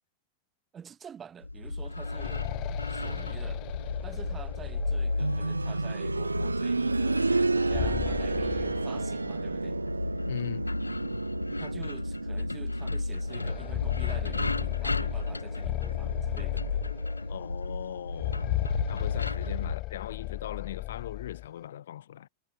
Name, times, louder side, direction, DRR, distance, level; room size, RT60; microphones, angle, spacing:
voice 1, 0.7-2.5 2.9-3.6 4.0-9.8 11.6-16.9 19.6-19.8, right 7 dB, 25° right, 5.2 m, -48 dB
sound 1, 1.4-19.8, left 2 dB, 90° left, 0.5 m, -34 dB
sound 2, 1.8-5.6 7.4-9.6 9.9-10.0 10.9-11.0 11.5-11.6 13.2-17.4 18.1-21.5, left 20 dB, 40° left, 4.1 m, -35 dB
sound 3, 5.2-16.0 16.3-16.4 17.3-17.4, right 3 dB, 85° right, 1.1 m, -32 dB
voice 2, 10.2-10.7 17.3-18.5 18.9-22.3, left 11 dB, 65° left, 1.5 m, -39 dB
figure-of-eight pair, 90°, 0 cm